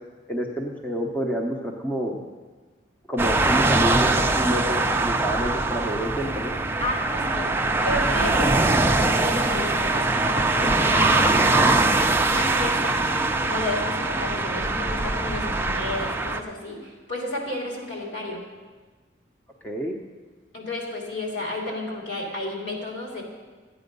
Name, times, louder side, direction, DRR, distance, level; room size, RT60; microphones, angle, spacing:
voice 1, 0.3-2.2 3.1-6.6 19.6-19.9, equal, 10° left, 0 dB, 0.8 m, -28 dB
sound 1, 3.2-16.4, right 2 dB, 10° right, 0.5 m, -22 dB
voice 2, 6.8-11.9 12.3-13.0 13.4-18.4 20.5-23.2, left 1 dB, 60° left, -2 dB, 3.2 m, -32 dB
13.5 x 8.9 x 5.3 m, 1.3 s
head